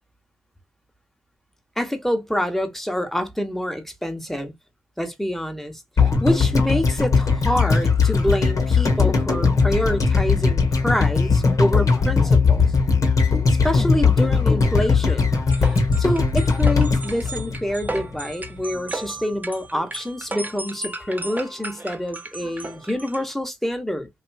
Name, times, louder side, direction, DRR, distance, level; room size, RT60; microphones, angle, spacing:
voice 1, 1.8-4.5 5.0-12.7 13.5-15.3 15.6-24.1, equal, 5° left, 1.0 m, -26 dB
sound 1, 6.0-18.2 18.4-18.5, left 4 dB, 60° left, 1.1 m, -19 dB
sound 2, 15.5-23.3, right 2 dB, 25° right, 0.7 m, -35 dB
3.0 x 2.4 x 2.2 m
supercardioid pair, 40°, 7 cm